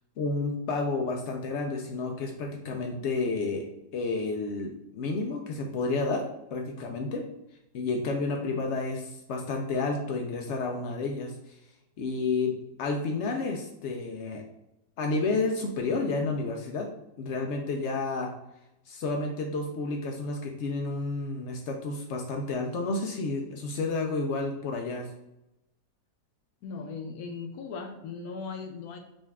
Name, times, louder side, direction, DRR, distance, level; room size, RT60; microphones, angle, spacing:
voice 1, 0.2-3.6 3.9-6.2 6.5-7.2 7.7-11.6 12.0-14.4 15.0-16.9 17.2-18.3 18.9-25.1, left 3 dB, 90° left, 2 dB, 0.6 m, -30 dB
voice 2, 26.6-29.0, left 4 dB, 70° left, 5 dB, 1.1 m, -38 dB
5.1 x 2.4 x 3.4 m, 0.90 s
omnidirectional pair, 1.7 m